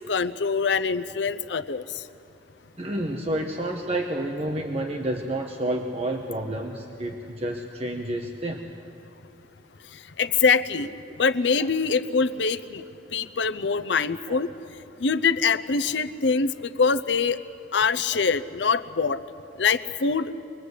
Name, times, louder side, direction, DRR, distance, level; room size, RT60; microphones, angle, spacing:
voice 1, 0.1-1.8 10.2-10.9 11.2-12.8 13.1-14.5 15.0-16.5 16.8-17.4 17.7-19.2 19.6-20.3, left 5 dB, 75° left, 13 dB, 0.7 m, -23 dB
voice 2, 2.8-8.6 11.1-11.2 11.6-11.7 14.3-14.4, right 1 dB, 35° right, 2 dB, 1.2 m, -30 dB
24.0 x 21.5 x 8.3 m, 2.6 s
head